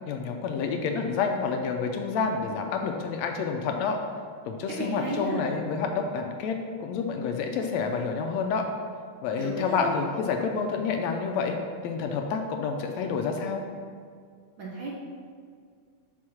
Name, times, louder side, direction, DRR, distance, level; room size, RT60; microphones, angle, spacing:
voice 1, 0.1-4.0 4.5-8.7 9.2-11.6 11.8-13.6, left 5 dB, 75° left, 4 dB, 1.7 m, -29 dB
voice 2, 4.8-5.5 9.4-10.0 14.6-14.9, right 1 dB, 55° right, -5 dB, 1.5 m, -32 dB
5.9 x 5.4 x 6.2 m, 2.1 s
omnidirectional pair, 3.3 m